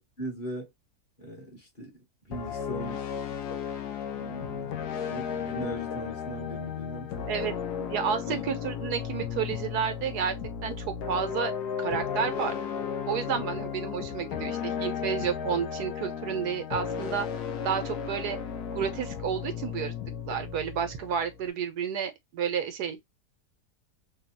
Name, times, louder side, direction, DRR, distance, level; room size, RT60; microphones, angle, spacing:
voice 1, 0.2-0.7 1.2-2.0 2.2-3.0 4.1-7.3 7.8-7.9 8.3-8.4 13.3-13.6, right 1 dB, 35° left, 1.3 m, -39 dB
sound 1, 2.3-21.5, left 7 dB, 75° left, 1.2 m, -34 dB
voice 2, 7.9-10.4 10.6-11.5 11.8-12.5 13.0-17.3 17.6-18.4 18.7-19.9 20.3-23.0, right 8 dB, 75° right, 1.3 m, -31 dB
3.3 x 2.4 x 2.6 m
omnidirectional pair, 1.8 m